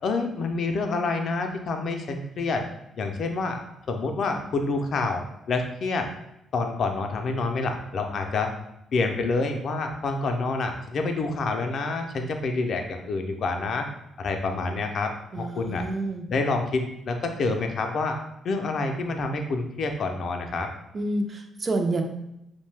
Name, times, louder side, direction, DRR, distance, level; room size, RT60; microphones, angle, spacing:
voice 1, 0.0-2.6 3.0-3.6 3.9-5.2 5.5-6.1 6.5-8.5 8.9-13.9 14.2-15.1 15.4-15.8 16.3-18.2 18.4-20.7, left 3 dB, 60° left, 4 dB, 0.4 m, -27 dB
voice 2, 15.3-16.3 20.9-22.0, right 2 dB, 40° right, 4 dB, 0.4 m, -28 dB
2.6 x 2.1 x 3.2 m, 0.83 s
cardioid pair, 90°, 0 cm